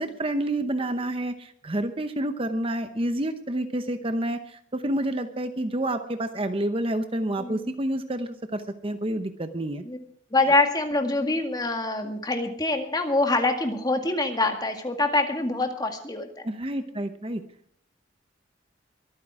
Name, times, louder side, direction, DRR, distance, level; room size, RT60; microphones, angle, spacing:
voice 1, 0.0-9.8 16.4-17.4, right 1 dB, 30° right, 8 dB, 0.8 m, -29 dB
voice 2, 7.4-7.7 9.8-10.0 10.3-16.5, left 2 dB, 20° left, 5 dB, 1.9 m, -25 dB
23.5 x 9.4 x 4.8 m, 0.62 s
head